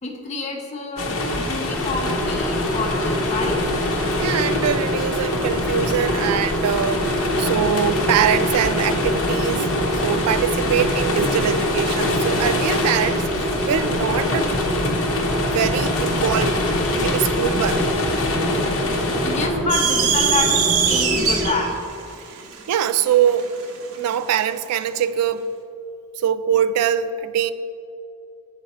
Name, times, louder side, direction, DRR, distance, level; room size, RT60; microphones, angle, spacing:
voice 1, 0.0-3.7 19.2-21.8, left 3 dB, 30° left, 0.5 m, -28 dB
sound 1, 1.0-19.5, left 2 dB, 65° left, 0.8 m, -25 dB
sound 2, 1.7-21.5, equal, 5° left, 1.4 m, -26 dB
voice 2, 4.2-9.7 10.0-14.6 15.4-16.6 17.0-17.9 22.3-22.4 22.7-23.5 24.0-25.5 26.2-27.5, right 9 dB, 90° right, 0.3 m, -23 dB
sound 3, 19.7-24.2, right 7 dB, 70° right, 0.7 m, -22 dB
6.9 x 4.7 x 4.2 m
head